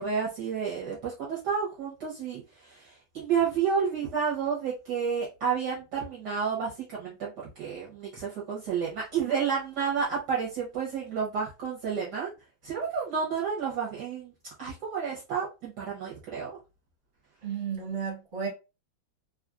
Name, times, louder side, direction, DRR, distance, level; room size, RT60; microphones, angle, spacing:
voice 1, 0.0-7.3 7.6-12.3 12.6-14.3 14.6-16.5, right 6 dB, 60° right, 1.3 m, -30 dB
voice 2, 17.4-18.5, right 7 dB, 35° right, 1.5 m, -33 dB
3.4 x 2.4 x 2.4 m
omnidirectional pair, 2.2 m